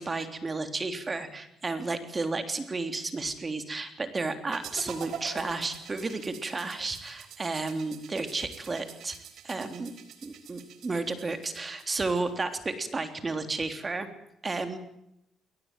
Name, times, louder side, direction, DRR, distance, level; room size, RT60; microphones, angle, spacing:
voice 1, 0.0-9.2 9.4-9.9 10.2-14.1 14.4-14.8, right 3 dB, 30° right, 8 dB, 3.5 m, -32 dB
sound 1, 4.5-12.6, right 8 dB, 75° right, 3.7 m, -46 dB
22.0 x 19.5 x 9.1 m, 0.79 s
cardioid pair, 90°, 0 cm